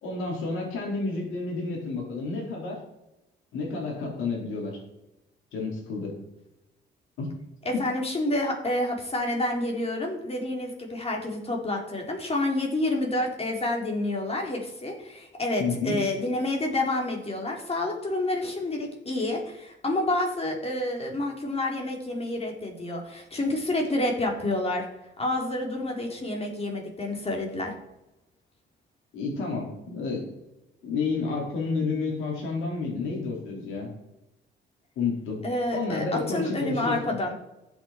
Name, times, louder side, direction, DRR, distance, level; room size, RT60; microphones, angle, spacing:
voice 1, 0.0-2.8 3.5-4.8 5.5-6.1 7.2-7.3 7.7-7.8 15.6-16.0 29.1-30.2 30.8-33.9 35.0-35.4 35.7-37.0, left 4 dB, 85° left, -1 dB, 4.6 m, -30 dB
voice 2, 7.7-24.9 25.2-27.7 35.4-37.3, left 1 dB, 30° left, 1 dB, 3.7 m, -29 dB
14.5 x 8.4 x 4.5 m, 0.93 s
cardioid pair, 90°, 20 cm